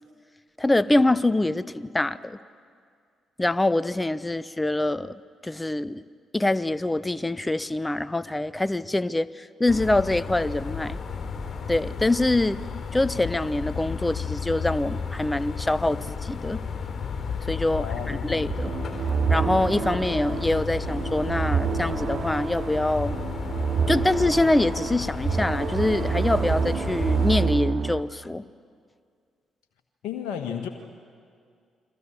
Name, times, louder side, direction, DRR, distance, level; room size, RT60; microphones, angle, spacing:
voice 1, 0.6-2.4 3.4-5.1 5.4-6.0 6.3-11.0 11.7-12.6 12.9-16.6 17.5-18.7 19.3-23.1 23.9-28.4, left 2 dB, 15° left, 17 dB, 0.9 m, -24 dB
sound 1, 9.7-27.4, left 5 dB, 45° left, 4.0 m, -33 dB
voice 2, 17.8-18.6 30.0-30.7, left 8 dB, 65° left, 4 dB, 1.5 m, -33 dB
sound 2, 18.5-28.0, right 6 dB, 50° right, 1.0 m, -28 dB
29.5 x 23.0 x 7.3 m, 2.2 s
figure-of-eight pair, 40°, 0 cm